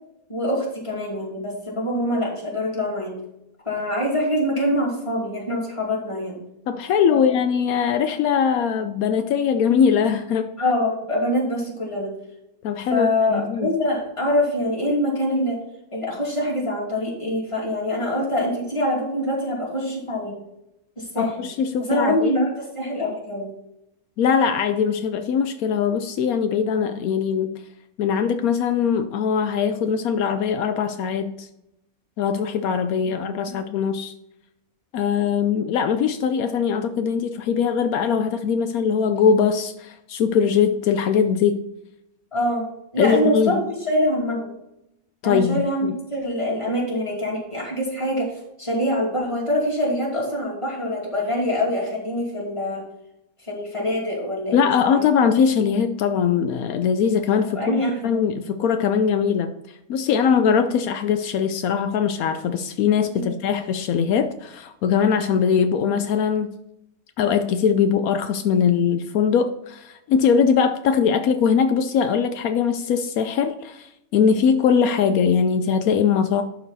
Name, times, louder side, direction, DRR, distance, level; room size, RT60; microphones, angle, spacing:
voice 1, 0.3-3.1 3.7-6.4 7.1-7.2 10.6-12.1 12.9-15.6 15.9-20.3 21.0-21.3 21.9-23.5 33.0-33.1 33.5-33.6 42.3-42.7 42.9-43.6 43.9-44.5 45.2-48.3 48.6-52.8 53.4-55.0 57.5-58.3 63.1-63.3, left 1 dB, 20° left, 2.7 m, -24 dB
voice 2, 6.7-10.5 12.6-13.7 21.2-22.3 24.2-27.6 28.0-31.5 32.2-34.1 34.9-41.6 43.0-43.6 45.2-45.9 54.5-66.5 67.2-76.4, left 7 dB, 80° left, 1.1 m, -21 dB
11.5 x 4.7 x 4.1 m
omnidirectional pair, 1.5 m